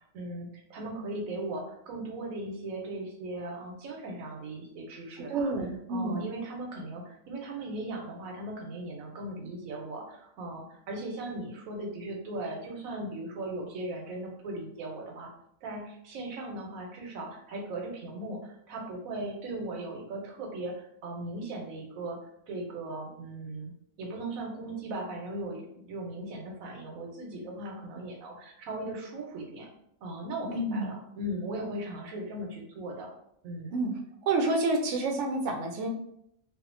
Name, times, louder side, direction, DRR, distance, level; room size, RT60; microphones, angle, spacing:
voice 1, 0.1-5.5 5.9-15.3 15.6-23.7 24.0-29.7 30.0-33.1 33.4-33.7, right 2 dB, 85° right, 0 dB, 1.1 m, -38 dB
voice 2, 5.3-6.3 30.5-30.9 33.7-33.9 34.2-35.9, right 2 dB, 70° right, 2 dB, 0.8 m, -28 dB
2.6 x 2.4 x 2.5 m, 0.73 s
omnidirectional pair, 1.4 m